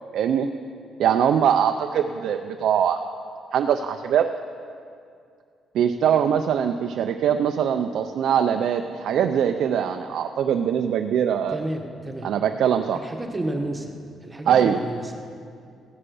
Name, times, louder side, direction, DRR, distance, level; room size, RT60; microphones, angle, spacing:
voice 1, 0.1-0.5 1.0-3.0 3.5-4.3 5.7-11.6 12.2-13.0 14.5-14.8, right 8 dB, 75° right, 6 dB, 0.5 m, -22 dB
voice 2, 11.5-12.3 12.9-13.9 14.2-15.2, right 1 dB, 20° right, 4 dB, 1.4 m, -31 dB
15.0 x 9.8 x 5.5 m, 2.3 s
cardioid pair, 90°, 0 cm